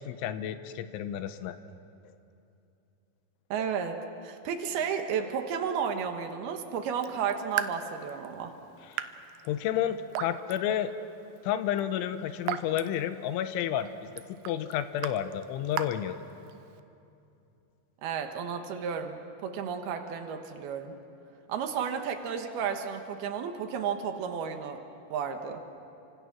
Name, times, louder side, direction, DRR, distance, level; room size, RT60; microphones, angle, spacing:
voice 1, 0.0-1.6 8.9-9.0 9.4-10.9 11.4-14.1 14.5-16.2, left 10 dB, 85° left, 11 dB, 3.2 m, -31 dB
voice 2, 3.5-8.6 18.0-21.0 21.5-24.8 25.1-25.6, right 7 dB, 65° right, 5 dB, 2.8 m, -33 dB
Raindrop / Drip, 6.9-16.8, right 11 dB, 85° right, 2.2 m, -40 dB
29.0 x 25.5 x 6.2 m, 2.7 s
omnidirectional pair, 5.6 m